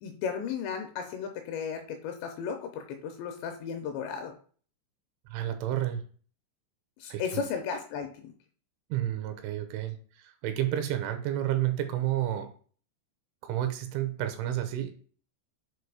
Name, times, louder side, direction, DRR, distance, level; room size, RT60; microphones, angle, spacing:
voice 1, 0.0-4.3 7.0-8.3, left 6 dB, 80° left, 5 dB, 2.7 m, -35 dB
voice 2, 5.3-6.0 7.1-7.4 8.9-12.5 13.4-14.9, right 12 dB, 85° right, 7 dB, 3.2 m, -30 dB
7.8 x 2.7 x 4.7 m, 0.43 s
omnidirectional pair, 5.6 m